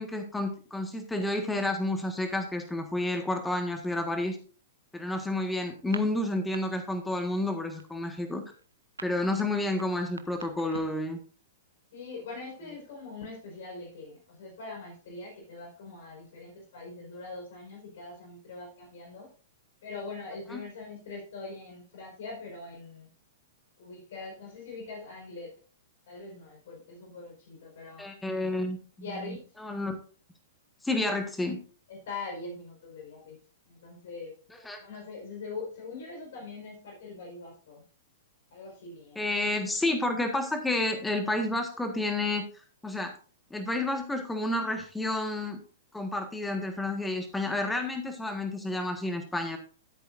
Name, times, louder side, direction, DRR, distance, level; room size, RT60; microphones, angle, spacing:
voice 1, 0.0-4.4 4.9-8.4 9.0-11.2 20.5-20.6 28.0-28.8 29.3-30.0 30.8-31.6 34.6-34.8 39.1-42.5 42.8-43.1 43.5-45.6 45.9-49.6, left 2 dB, 5° left, 5 dB, 1.6 m, -30 dB
sound 1, 5.8-6.6 6.9-7.2 7.5-11.1, right 4 dB, 90° right, 0.9 m, -44 dB
voice 2, 11.9-19.3 19.8-23.1 23.8-25.6 26.1-28.1 29.0-29.4 31.9-33.4 33.7-34.3 34.8-37.8 38.5-39.3, left 3 dB, 60° left, 0 dB, 4.8 m, -42 dB
14.0 x 8.3 x 2.6 m, 0.39 s
hypercardioid pair, 110°, 0 cm